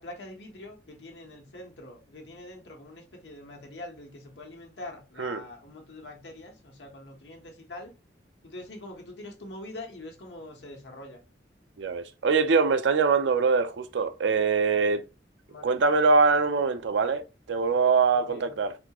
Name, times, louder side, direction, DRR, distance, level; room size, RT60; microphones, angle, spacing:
voice 1, 0.0-7.9 8.4-11.2 15.5-15.7 18.1-18.5, left 1 dB, 75° left, 1.1 m, -44 dB
voice 2, 11.8-15.0 15.6-18.8, right 4 dB, 85° right, 0.5 m, -23 dB
4.0 x 2.4 x 2.9 m
head